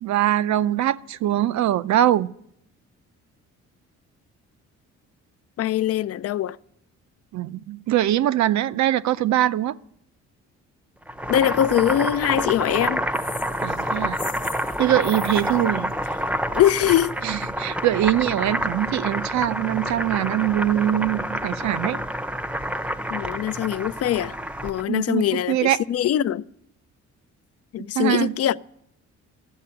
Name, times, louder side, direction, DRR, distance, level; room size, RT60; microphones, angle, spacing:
voice 1, 0.0-2.3 7.3-9.7 13.6-14.2 14.8-15.9 17.2-22.0 24.9-25.8 28.0-28.3, right 13 dB, 65° right, 0.6 m, -22 dB
voice 2, 5.6-6.6 11.3-13.1 16.5-17.1 23.1-24.3 24.6-26.4 27.7-28.6, left 11 dB, 55° left, 0.5 m, -22 dB
Boiling, 11.0-24.8, equal, 5° right, 0.7 m, -28 dB
sound 1, 13.1-16.9, left 7 dB, 40° left, 1.1 m, -41 dB
13.5 x 7.6 x 8.7 m
cardioid pair, 90°, 30 cm